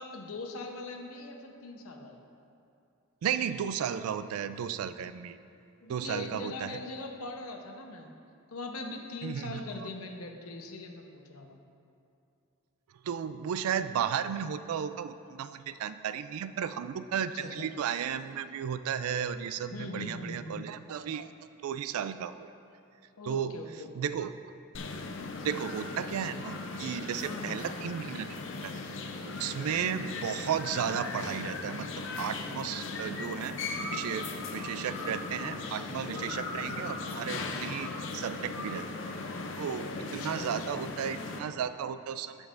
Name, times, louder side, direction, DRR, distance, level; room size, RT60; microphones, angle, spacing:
voice 1, 0.0-2.2 5.8-8.1 8.5-11.6 17.3-17.7 19.7-20.7 23.2-23.9 27.2-27.8 28.9-29.0 29.5-29.7 40.2-40.9, left 2 dB, 90° left, 3 dB, 0.8 m, -41 dB
voice 2, 3.2-5.4 5.9-6.8 9.2-9.6 13.0-21.3 21.6-22.5 23.2-23.6 24.0-24.3 25.4-28.3 28.6-28.8 29.3-38.9 39.6-42.4, right 8 dB, 90° right, 12 dB, 0.3 m, -34 dB
sound 1, 24.7-41.4, left 3 dB, 60° left, 0.5 m, -38 dB
15.5 x 5.4 x 2.5 m, 2.6 s
head